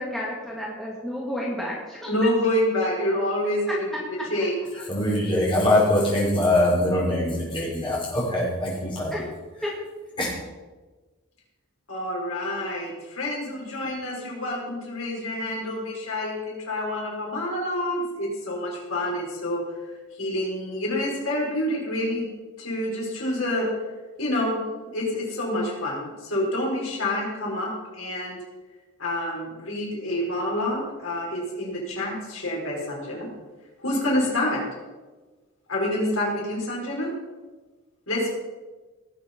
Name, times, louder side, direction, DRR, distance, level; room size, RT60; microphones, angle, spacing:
voice 1, 0.0-2.2 9.1-9.3 9.6-9.7, equal, ahead, -5 dB, 2.3 m, -31 dB
voice 2, 2.1-3.9 4.3-4.5 11.9-19.6 20.2-22.3 22.6-23.7 24.2-28.4 29.0-33.3 33.8-34.6 35.7-37.1 38.1-38.3, left 1 dB, 75° left, -3 dB, 5.0 m, -27 dB
voice 3, 4.9-9.1 10.2-10.3, left 1 dB, 25° left, -6 dB, 5.9 m, -22 dB
19.0 x 8.4 x 5.4 m, 1.3 s
head